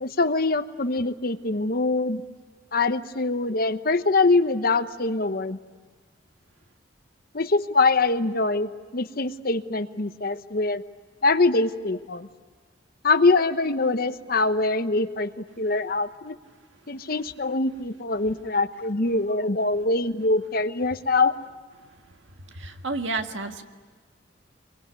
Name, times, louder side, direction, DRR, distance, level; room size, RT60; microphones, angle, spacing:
voice 1, 0.0-2.2 2.7-5.6 7.3-10.8 11.2-12.3 13.0-16.3 16.9-21.3, left 3 dB, 50° left, 11 dB, 1.0 m, -24 dB
voice 2, 22.5-23.6, right 3 dB, 85° right, 5 dB, 1.8 m, -30 dB
26.5 x 23.0 x 9.6 m, 1.5 s
head